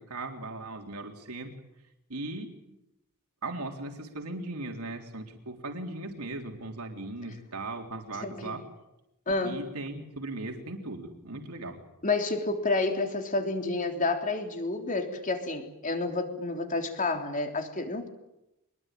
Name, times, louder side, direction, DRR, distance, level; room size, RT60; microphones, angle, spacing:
voice 1, 0.0-1.5 2.1-2.7 3.4-8.6 9.4-11.8, right 2 dB, 85° right, 3 dB, 3.7 m, -38 dB
voice 2, 8.2-8.6 9.3-9.6 12.0-18.1, left 3 dB, 35° left, 5 dB, 3.6 m, -30 dB
25.5 x 21.5 x 9.2 m, 0.88 s
head